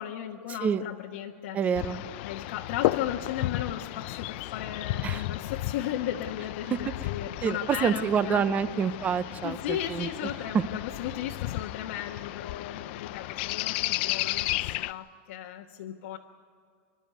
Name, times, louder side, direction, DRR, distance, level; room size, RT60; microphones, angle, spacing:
voice 1, 0.0-1.8 2.2-8.4 9.4-16.2, left 11 dB, 80° left, 0 dB, 1.2 m, -36 dB
voice 2, 1.5-2.0 5.0-5.2 6.7-6.8 7.4-9.6 9.9-10.1, right 7 dB, 20° right, 14 dB, 0.7 m, -27 dB
sound 1, 1.7-14.9, left 17 dB, 55° left, 0.5 m, -33 dB
25.5 x 12.5 x 9.4 m, 2.2 s
supercardioid pair, 165°, 7 cm